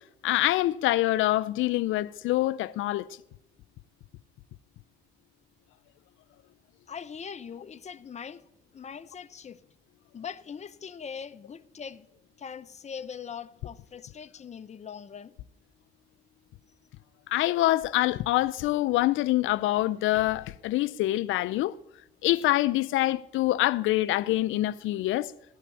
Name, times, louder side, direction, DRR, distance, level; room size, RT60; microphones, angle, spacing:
voice 1, 0.2-3.1 17.3-21.7 22.2-25.3, left 16 dB, 85° left, 0.4 m, -25 dB
voice 2, 6.9-8.4 8.7-9.6 10.1-12.1 12.4-15.3, left 7 dB, 35° left, 0.7 m, -41 dB
15.0 x 5.9 x 8.2 m
cardioid pair, 90°, 20 cm